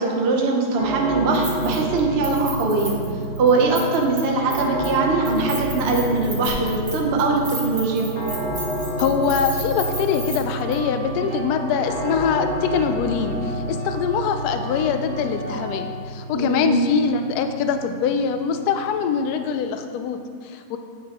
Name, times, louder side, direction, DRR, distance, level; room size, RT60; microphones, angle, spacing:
voice 1, 0.0-3.0 3.4-8.1 16.3-16.8, right 3 dB, 55° right, 0 dB, 0.7 m, -21 dB
sound 1, 0.8-19.7, equal, 60° left, 1.7 m, -30 dB
Keys jangling, 1.3-2.0 2.2-4.2 4.5-4.9 5.2-10.4 10.7-10.8, right 2 dB, 35° right, 1.2 m, -34 dB
sound 2, 7.8-15.8, right 3 dB, 85° right, 1.7 m, -37 dB
voice 2, 9.0-20.8, left 6 dB, 80° left, 7 dB, 0.8 m, -23 dB
8.9 x 5.9 x 2.9 m, 2.2 s
omnidirectional pair, 2.1 m